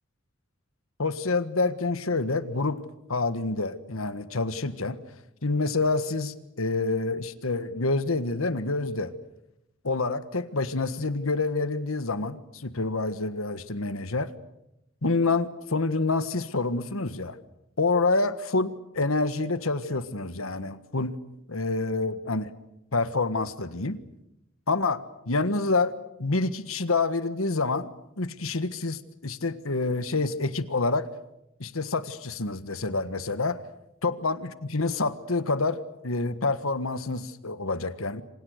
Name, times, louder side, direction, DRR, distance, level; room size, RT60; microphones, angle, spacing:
voice 1, 1.0-2.8 3.1-5.0 5.4-9.1 9.8-14.3 15.0-17.4 17.8-21.2 21.5-22.5 22.9-24.0 24.7-25.9 26.2-27.9 28.2-31.1 31.6-33.6 34.0-38.2, left 3 dB, 85° left, 12 dB, 1.5 m, -27 dB
28.0 x 26.0 x 6.6 m, 0.85 s
head